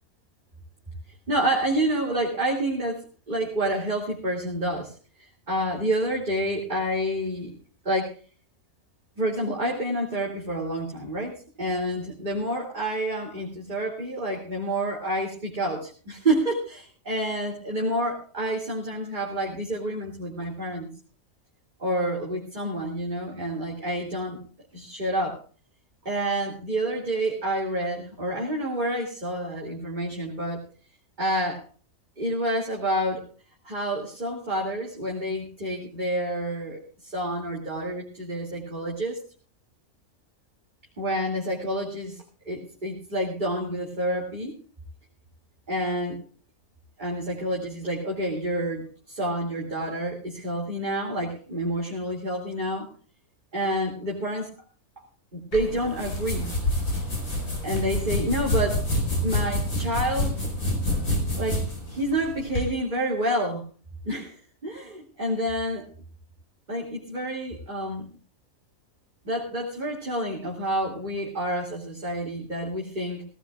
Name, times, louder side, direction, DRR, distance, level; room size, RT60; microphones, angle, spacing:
voice 1, 1.3-7.5 7.8-8.1 9.2-20.9 21.8-24.4 24.7-25.4 26.0-30.6 31.2-31.6 32.2-33.2 33.6-39.2 41.0-44.5 45.7-46.2 47.0-52.9 53.5-54.5 55.0-55.1 55.3-56.5 57.6-58.8 59.2-60.4 61.4-63.6 64.0-65.9 66.7-68.1 69.2-73.2, right 1 dB, 30° right, -3 dB, 2.8 m, -28 dB
sound 1, 55.5-62.7, left 1 dB, 75° left, 5.2 m, -27 dB
17.5 x 17.0 x 2.4 m, 0.38 s
omnidirectional pair, 1.6 m